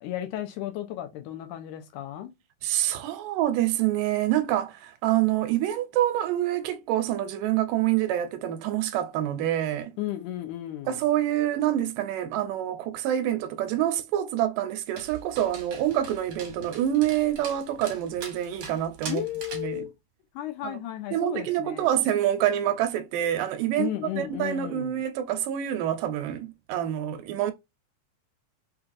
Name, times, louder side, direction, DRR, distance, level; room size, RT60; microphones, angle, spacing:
voice 1, 0.0-2.3 10.0-11.0 19.1-19.9 20.4-21.9 23.8-25.0, left 13 dB, 80° left, 2.0 m, -34 dB
voice 2, 2.6-9.9 10.9-19.2 19.5-19.9 20.6-20.8 21.1-23.9 24.2-27.5, right 12 dB, 85° right, 2.2 m, -26 dB
Dog, 15.0-19.8, right 5 dB, 60° right, 2.4 m, -42 dB
5.8 x 2.4 x 2.4 m
omnidirectional pair, 3.8 m